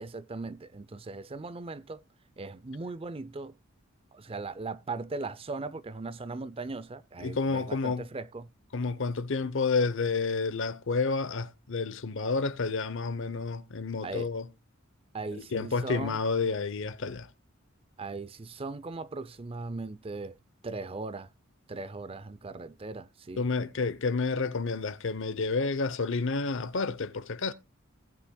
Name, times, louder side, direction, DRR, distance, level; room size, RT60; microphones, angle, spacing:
voice 1, 0.0-2.0 2.4-3.5 4.1-8.5 14.0-14.3 15.1-16.2 18.0-20.4 20.6-21.3 21.7-23.5, right 3 dB, 25° right, 0.5 m, -38 dB
voice 2, 7.2-8.0 8.7-14.5 15.4-17.3 23.4-27.5, left 4 dB, 65° left, 0.8 m, -30 dB
18.5 x 7.2 x 2.3 m
head